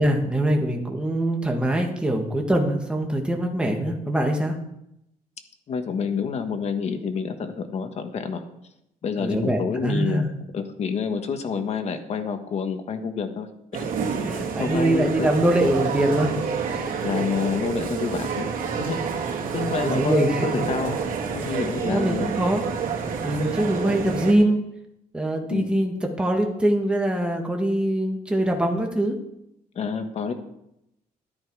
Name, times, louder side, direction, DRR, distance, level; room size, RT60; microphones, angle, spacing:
voice 1, 0.0-4.5 9.2-10.3 14.2-16.3 16.6-16.9 19.8-20.7 21.8-22.6 23.2-24.6 25.1-29.2, right 1 dB, 5° right, 1 dB, 1.7 m, -23 dB
voice 2, 5.7-8.4 9.0-10.2 10.5-13.5 13.7-15.3 17.0-21.0 21.3-22.3 25.5-25.7 29.7-30.3, left 6 dB, 50° left, 6 dB, 1.4 m, -28 dB
sound 1, 13.7-24.3, right 6 dB, 90° right, 2.3 m, -28 dB
12.0 x 10.5 x 4.8 m, 0.81 s
cardioid pair, 145°, 14 cm